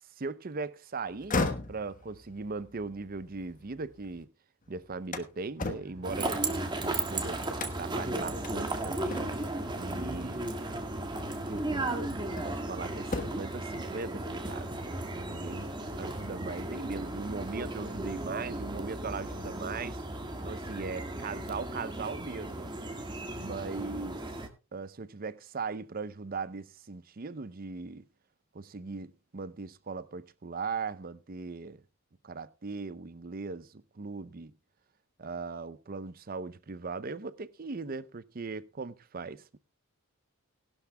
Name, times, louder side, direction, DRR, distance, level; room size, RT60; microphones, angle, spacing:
voice 1, 0.2-1.4 1.7-4.3 4.7-6.4 6.8-7.4 7.7-9.3 9.8-10.5 11.5-12.1 12.4-14.8 15.3-15.7 16.0-20.0 20.4-22.6 23.3-24.2 24.7-28.0 28.5-31.8 32.2-34.5 35.2-39.6, right 4 dB, 45° right, 0.6 m, -39 dB
sound 1, 1.1-4.2 4.6-7.0 7.5-8.0 8.4-8.6 9.1-9.6 10.8-11.0 11.6-12.7 13.0-13.6, left 3 dB, 40° left, 1.2 m, -37 dB
sound 2, 5.9-17.3, equal, 80° right, 4.6 m, -47 dB
sound 3, 6.0-24.5, right 2 dB, 20° right, 1.6 m, -35 dB
19.0 x 11.5 x 2.2 m
head